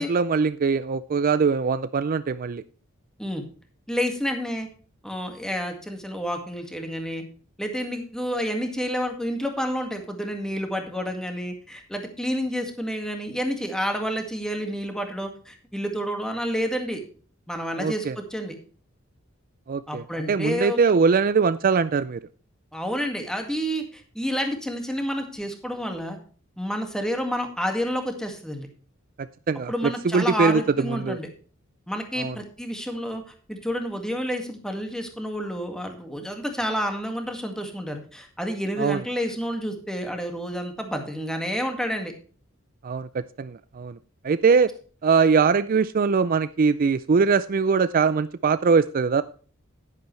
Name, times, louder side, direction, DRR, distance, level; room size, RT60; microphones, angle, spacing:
voice 1, 0.0-2.6 17.8-18.2 19.7-22.2 29.5-29.7 30.0-31.2 32.2-32.4 38.8-39.0 42.8-44.0 44.2-44.7 45.0-49.2, right 5 dB, 45° right, 14 dB, 0.4 m, -22 dB
voice 2, 3.9-4.7 5.0-7.2 7.6-17.0 17.5-18.6 19.9-20.8 22.7-26.2 26.6-28.7 29.7-31.3 31.9-33.2 33.5-42.1, equal, 5° left, 4 dB, 1.9 m, -29 dB
11.0 x 10.0 x 3.2 m, 0.40 s
head